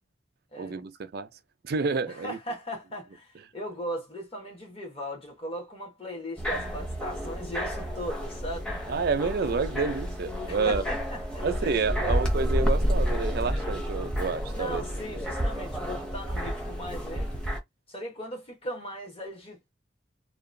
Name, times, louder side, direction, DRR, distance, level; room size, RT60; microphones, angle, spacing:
voice 1, 0.6-1.3 1.6-2.4 8.9-10.8 11.4-14.8, right 4 dB, 55° right, 0.4 m, -29 dB
voice 2, 2.1-8.7 10.5-12.2 14.5-17.3 17.9-19.7, equal, 30° left, 1.0 m, -38 dB
sound 1, 6.4-17.6, equal, 5° left, 0.7 m, -30 dB
2.8 x 2.2 x 2.6 m
head